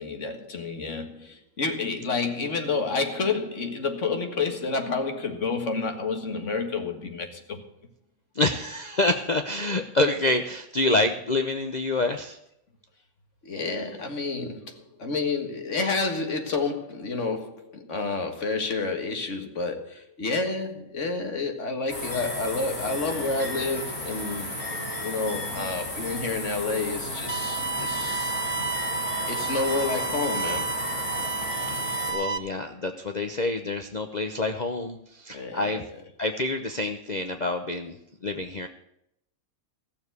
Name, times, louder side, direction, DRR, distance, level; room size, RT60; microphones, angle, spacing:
voice 1, 0.0-7.6 13.4-24.5 25.0-28.4 29.3-30.8 35.3-36.0, left 4 dB, 55° left, 2.1 m, -29 dB
voice 2, 8.4-12.4 31.7-31.8 32.1-35.8 36.2-38.0 38.2-38.7, left 2 dB, 35° left, 0.8 m, -27 dB
sound 1, 21.9-32.1, left 1 dB, 90° left, 5.5 m, -33 dB
sound 2, 27.3-32.4, right 5 dB, 15° right, 0.4 m, -31 dB
15.0 x 7.2 x 8.0 m
omnidirectional pair, 1.5 m